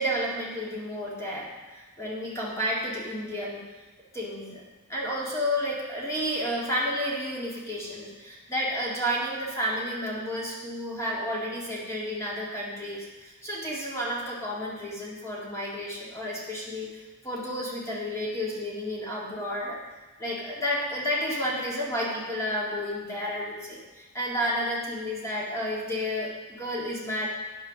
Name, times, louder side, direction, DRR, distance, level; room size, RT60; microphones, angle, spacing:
voice 1, 0.0-3.6 4.1-4.6 4.9-16.9 17.2-19.8 20.2-27.3, equal, 15° left, -5 dB, 2.1 m, -31 dB
10.5 x 7.0 x 5.9 m, 1.2 s
head